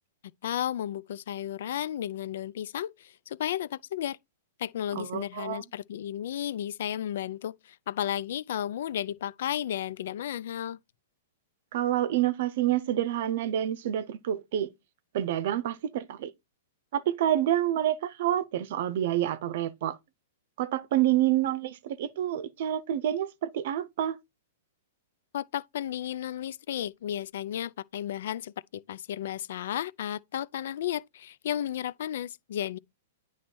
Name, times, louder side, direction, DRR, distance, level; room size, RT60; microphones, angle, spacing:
voice 1, 0.4-4.2 4.6-10.8 25.3-32.8, left 11 dB, 65° left, 0.4 m, -33 dB
voice 2, 4.9-5.6 11.7-14.7 15.1-16.3 16.9-20.0 20.6-24.2, right 12 dB, 60° right, 0.6 m, -28 dB
9.2 x 3.1 x 4.4 m
hypercardioid pair, 120°, 0 cm